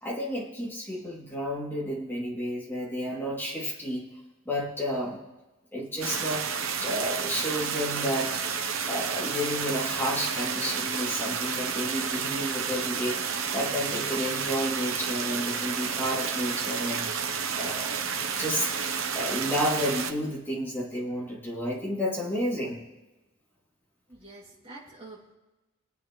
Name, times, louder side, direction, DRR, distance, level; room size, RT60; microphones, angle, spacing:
voice 1, 0.0-4.0 4.4-5.2 5.7-6.5 6.8-18.7 19.1-22.8, equal, 10° left, -5 dB, 2.8 m, -31 dB
sound 1, 6.0-20.1, right 6 dB, 70° right, 0.9 m, -31 dB
voice 2, 24.1-25.3, right 2 dB, 25° right, -4 dB, 2.5 m, -47 dB
23.0 x 8.8 x 3.2 m, 1.1 s
head